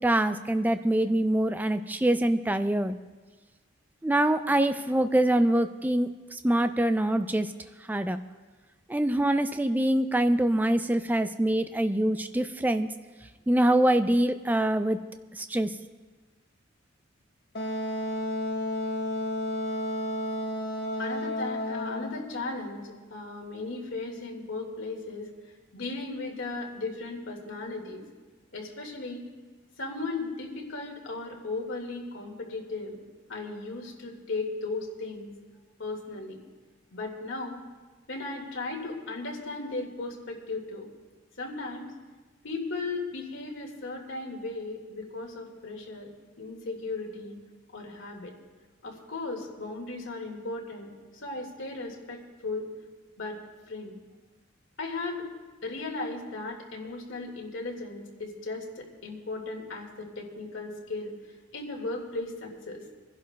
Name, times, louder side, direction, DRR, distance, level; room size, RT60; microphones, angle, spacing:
voice 1, 0.0-3.0 4.0-7.5 7.9-8.2 8.9-12.9 13.5-15.0 15.3-15.7, right 1 dB, 10° right, 9 dB, 0.3 m, -24 dB
Wind instrument woodwind instrument, 17.5-22.2, left 1 dB, 50° left, 1.3 m, -31 dB
voice 2, 21.0-25.3 25.7-28.0 28.5-29.3 29.8-33.0 33.3-35.3 35.8-36.4 36.9-37.6 38.1-40.9 41.4-41.9 42.4-47.4 47.7-48.3 48.8-52.7 53.2-53.4 53.7-54.0 54.8-55.3 55.6-61.1 61.5-62.8, left 3 dB, 75° left, 0 dB, 2.0 m, -36 dB
29.0 x 11.0 x 2.2 m, 1.3 s
head